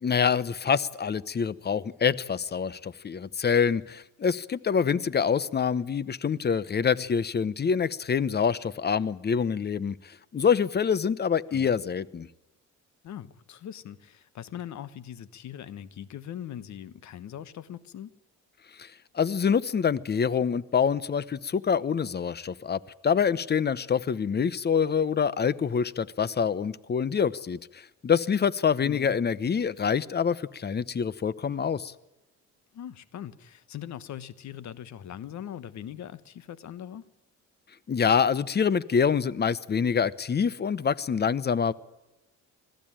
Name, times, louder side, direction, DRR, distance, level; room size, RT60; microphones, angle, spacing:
voice 1, 0.0-9.9 10.3-12.3 18.8-18.9 19.1-31.9 37.9-41.7, left 6 dB, 35° left, 20 dB, 0.9 m, -26 dB
voice 2, 13.0-18.2 28.8-29.2 32.7-37.1, left 10 dB, 65° left, 16 dB, 1.3 m, -41 dB
21.5 x 15.0 x 8.9 m, 1.0 s
cardioid pair, 90°, 30 cm